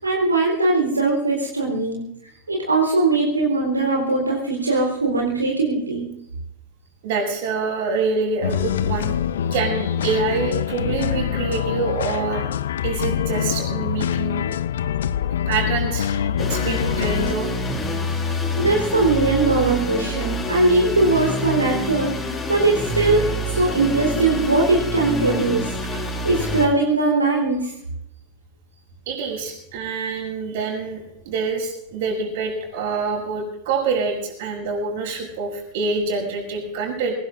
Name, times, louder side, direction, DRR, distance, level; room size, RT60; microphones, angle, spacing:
voice 1, 0.0-2.0 2.5-6.0 18.1-22.1 22.5-25.7 26.2-27.7, right 2 dB, 80° right, -3 dB, 4.0 m, -20 dB
voice 2, 7.0-9.2 9.5-12.5 12.8-14.4 15.5-17.5 29.1-37.1, right 4 dB, 50° right, 0 dB, 7.0 m, -26 dB
sound 1, 8.4-17.3, left 9 dB, 60° left, 0.7 m, -24 dB
sound 2, 16.4-26.7, equal, 20° left, 4.8 m, -27 dB
25.0 x 18.5 x 2.6 m, 0.79 s
figure-of-eight pair, 90°, 0 cm